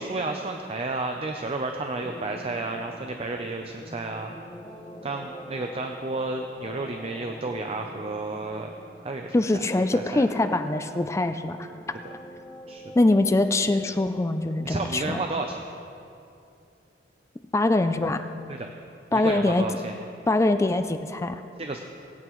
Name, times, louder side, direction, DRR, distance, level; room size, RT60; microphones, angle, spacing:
voice 1, 0.0-4.3 5.0-8.7 9.0-9.3 9.9-10.2 12.6-12.8 14.6-15.6 18.5-18.7 19.1-19.9 21.6-21.8, right 3 dB, 35° right, 3 dB, 0.5 m, -31 dB
sound 1, 2.0-15.5, equal, 35° left, 1.9 m, -45 dB
voice 2, 9.3-11.7 13.0-15.2 17.5-18.2 19.1-19.6 20.3-21.4, left 2 dB, 15° left, 9 dB, 0.3 m, -23 dB
19.5 x 8.7 x 3.1 m, 2.6 s
head